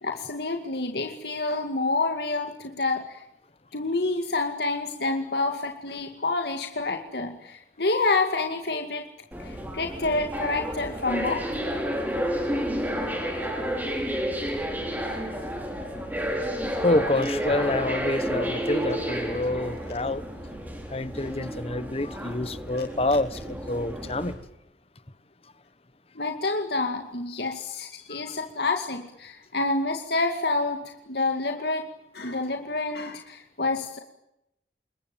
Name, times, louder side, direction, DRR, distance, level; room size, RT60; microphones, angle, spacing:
voice 1, 0.0-3.2 3.7-9.1 9.4-11.4 26.2-34.0, left 3 dB, 65° left, 2.2 m, -28 dB
sound 1, 9.3-24.3, equal, 10° right, 6.2 m, -31 dB
voice 2, 16.8-20.2 20.9-24.3 28.1-28.2, left 2 dB, 35° left, 1.2 m, -27 dB
27.5 x 22.5 x 9.1 m
head